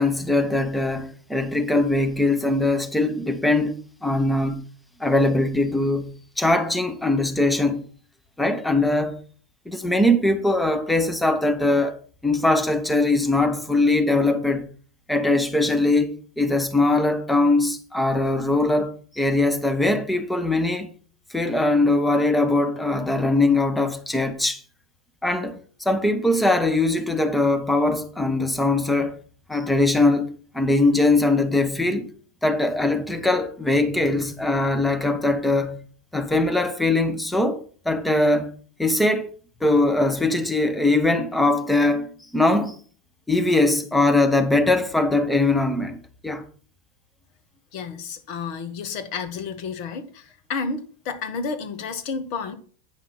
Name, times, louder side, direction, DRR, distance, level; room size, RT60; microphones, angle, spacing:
voice 1, 0.0-4.7 5.0-7.9 8.4-9.2 9.7-14.7 15.1-20.9 21.3-24.6 25.2-29.1 29.5-32.1 32.4-35.8 36.1-37.6 37.8-38.5 38.8-39.3 39.6-42.8 43.3-46.0 46.2-46.4, left 2 dB, 5° left, 1.2 m, -21 dB
voice 2, 47.7-52.6, left 5 dB, 55° left, 1.4 m, -31 dB
9.4 x 5.8 x 5.7 m
figure-of-eight pair, 85°, 0 cm